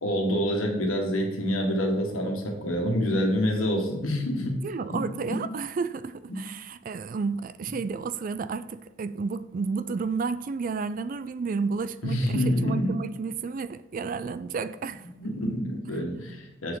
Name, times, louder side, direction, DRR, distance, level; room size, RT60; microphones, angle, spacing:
voice 1, 0.0-5.0 5.3-5.4 6.3-6.4 12.0-12.9 15.2-16.8, equal, 90° left, 1.6 m, -27 dB
voice 2, 4.6-15.1, right 4 dB, 40° right, 0.3 m, -31 dB
6.6 x 6.5 x 3.8 m
head